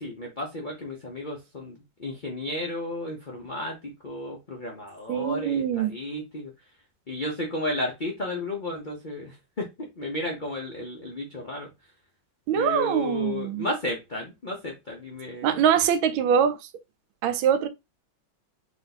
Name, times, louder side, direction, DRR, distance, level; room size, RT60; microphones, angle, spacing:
voice 1, 0.0-6.5 7.1-11.7 12.5-15.6, left 1 dB, 70° left, 0.4 m, -33 dB
voice 2, 5.1-5.9 12.5-13.7 15.4-16.6 17.2-17.7, right 8 dB, 80° right, 1.4 m, -23 dB
3.5 x 2.6 x 4.0 m
omnidirectional pair, 2.2 m